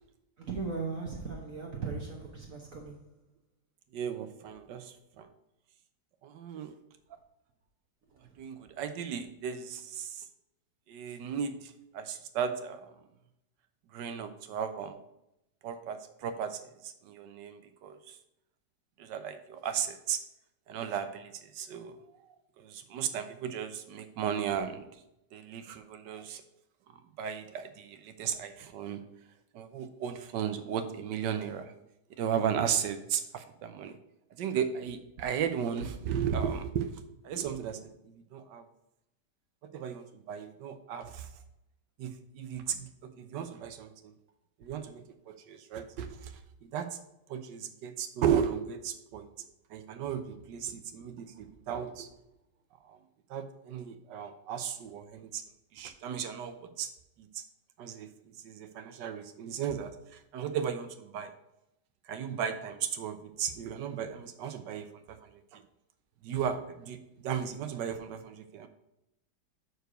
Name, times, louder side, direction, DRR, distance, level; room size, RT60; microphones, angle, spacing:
voice 1, 0.4-3.1, right 4 dB, 55° right, 1.4 m, -37 dB
voice 2, 3.9-5.3 6.2-6.7 8.4-10.2 10.9-12.9 13.9-15.0 15.6-18.2 19.0-20.2 20.7-22.0 22.6-24.8 25.3-26.4 26.9-29.0 29.5-31.7 32.2-34.0 34.3-36.9 37.2-38.6 39.7-41.3 42.0-44.1 44.6-46.9 47.3-49.3 49.7-52.1 52.8-53.0 53.3-55.4 55.7-56.9 57.2-57.4 57.8-58.1 58.4-61.3 62.1-65.2 65.5-65.6 66.2-67.0 67.2-68.7, right 8 dB, 85° right, 1.4 m, -35 dB
6.4 x 4.7 x 6.6 m
omnidirectional pair, 1.9 m